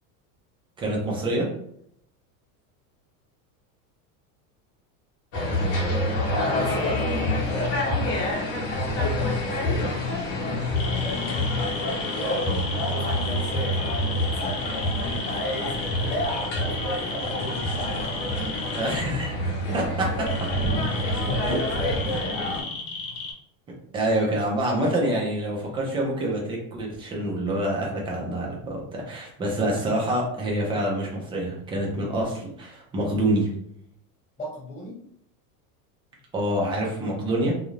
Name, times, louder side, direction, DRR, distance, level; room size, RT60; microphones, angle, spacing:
voice 1, 0.8-1.5 18.8-19.4 19.7-20.5 21.1-21.6 23.9-33.5 36.3-37.5, right 1 dB, 10° right, -2 dB, 0.4 m, -26 dB
sound 1, 5.3-22.6, left 1 dB, 35° left, 0.8 m, -27 dB
voice 2, 5.8-9.9 10.8-11.3 11.5-12.4 12.8-18.4 19.7-19.9 20.9-22.6 34.4-35.0, left 1 dB, 15° left, -6 dB, 1.2 m, -34 dB
sound 2, 10.7-23.3, left 3 dB, 75° left, 1.0 m, -34 dB
2.5 x 2.3 x 3.0 m, 0.70 s
supercardioid pair, 155°, 44 cm